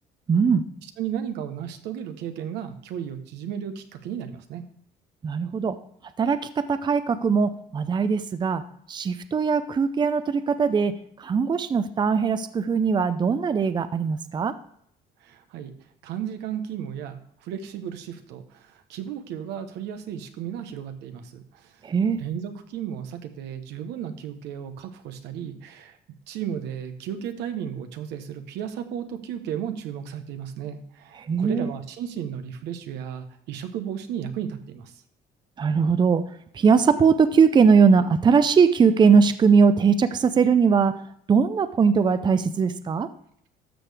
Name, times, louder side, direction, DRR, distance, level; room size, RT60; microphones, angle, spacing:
voice 1, 0.3-0.6 5.2-5.8 6.2-8.6 8.9-10.9 11.2-14.5 21.8-22.2 31.3-31.7 35.6-36.2 36.5-40.9 41.3-43.1, right 5 dB, 25° right, 12 dB, 0.5 m, -20 dB
voice 2, 1.0-4.6 15.2-15.7 16.0-21.7 22.2-26.0 26.3-35.0, right 9 dB, 85° right, 8 dB, 1.1 m, -34 dB
13.0 x 6.5 x 3.4 m, 0.68 s
cardioid pair, 110°, 17 cm